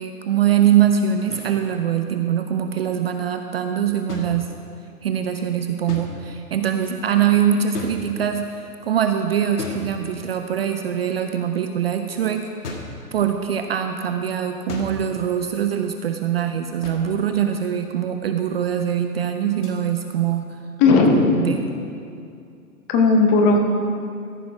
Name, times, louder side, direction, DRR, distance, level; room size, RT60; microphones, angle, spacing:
voice 1, 0.0-4.5 5.0-12.8 13.1-20.4 21.4-21.6, right 9 dB, 45° right, 6 dB, 0.5 m, -23 dB
sound 1, 1.3-1.6 4.1-4.9 5.9-6.5 7.7-8.5 9.6-10.4 12.6-13.1 14.7-15.2 16.8-17.3 19.6-19.8, left 3 dB, 80° left, 1.7 m, -35 dB
voice 2, 20.8-21.4 22.9-23.6, left 3 dB, 20° left, 3 dB, 0.8 m, -15 dB
14.0 x 6.2 x 4.7 m, 2.4 s
hypercardioid pair, 140°, 46 cm